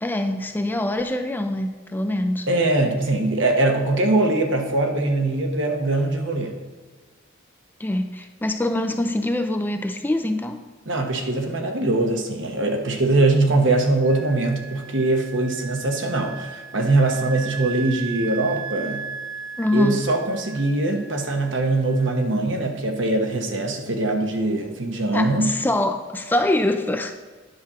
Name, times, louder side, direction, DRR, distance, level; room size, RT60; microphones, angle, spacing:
voice 1, 0.0-2.5 7.8-10.6 19.6-20.0 25.1-27.2, left 1 dB, 10° left, 7 dB, 0.4 m, -24 dB
voice 2, 2.5-6.5 10.9-19.0 19.7-25.5, right 2 dB, 65° right, 3 dB, 1.2 m, -22 dB
Wind instrument woodwind instrument, 14.0-22.3, right 7 dB, 80° right, 0.7 m, -37 dB
9.5 x 4.3 x 6.0 m, 1.4 s
head